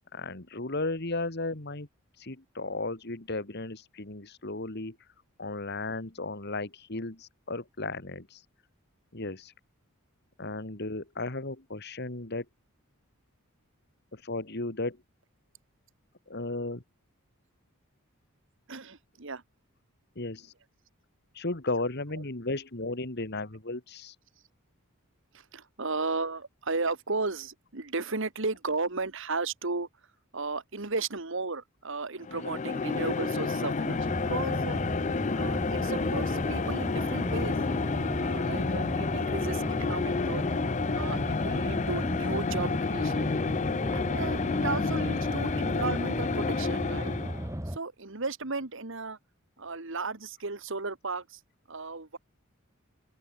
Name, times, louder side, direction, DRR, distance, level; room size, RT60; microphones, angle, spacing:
voice 1, 0.1-1.9 2.2-5.0 5.4-8.4 9.1-9.5 10.4-12.5 14.1-15.0 16.3-16.8 20.2-20.5 21.3-24.1, left 2 dB, 50° left, 2.1 m, -35 dB
voice 2, 18.7-19.4 21.8-22.2 25.3-29.9 30.3-34.8 35.3-37.7 38.2-40.4 40.9-43.3 43.9-47.1 47.7-49.2 49.6-51.4 51.7-52.2, right 3 dB, 60° right, 1.7 m, -35 dB
sound 1, 32.2-47.5, left 4 dB, 35° left, 0.5 m, -30 dB
sound 2, 34.0-47.8, equal, 15° right, 2.4 m, -36 dB
open air
head